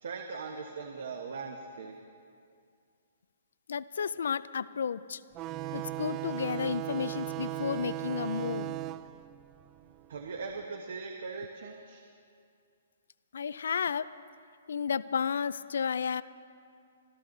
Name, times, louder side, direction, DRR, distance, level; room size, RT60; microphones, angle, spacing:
voice 1, 0.0-1.9 10.1-12.0, right 4 dB, 65° right, 3 dB, 1.2 m, -40 dB
voice 2, 3.7-5.2 5.7-8.8 13.3-14.1 14.7-16.2, left 6 dB, 75° left, 17 dB, 0.4 m, -32 dB
sound 1, 5.3-10.5, right 14 dB, 20° right, 0.3 m, -37 dB
26.0 x 12.5 x 3.9 m, 2.3 s
hypercardioid pair, 170°, 0 cm